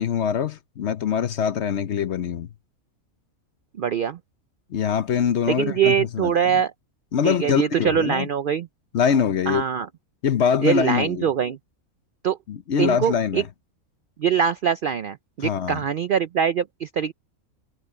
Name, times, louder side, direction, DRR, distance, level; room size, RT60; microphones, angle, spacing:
voice 1, 0.0-2.5 4.7-6.3 7.1-8.3 8.9-9.6 10.2-11.3 12.5-13.4 15.4-15.8, left 7 dB, 55° left, 0.9 m, -23 dB
voice 2, 3.8-4.2 5.5-6.7 7.2-8.7 9.5-9.9 10.6-11.6 12.2-12.4 12.8-13.4 14.2-17.1, right 7 dB, 70° right, 0.5 m, -23 dB
omnidirectional pair, 1.5 m